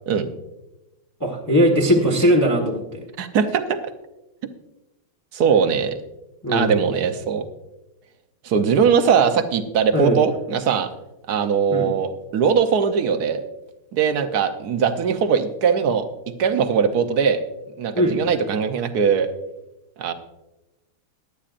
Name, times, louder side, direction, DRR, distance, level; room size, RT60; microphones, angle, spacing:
voice 1, 1.2-3.0 6.4-6.8 9.9-10.2 11.7-11.9 17.9-18.2, equal, 15° left, 0 dB, 0.8 m, -19 dB
voice 2, 3.2-3.8 5.3-6.0 6.5-7.4 8.4-10.9 11.3-13.4 13.9-16.0 16.4-17.4 17.8-19.3 20.0-20.1, right 6 dB, 60° right, 8 dB, 1.1 m, -20 dB
17.0 x 11.5 x 2.5 m, 0.99 s
omnidirectional pair, 2.4 m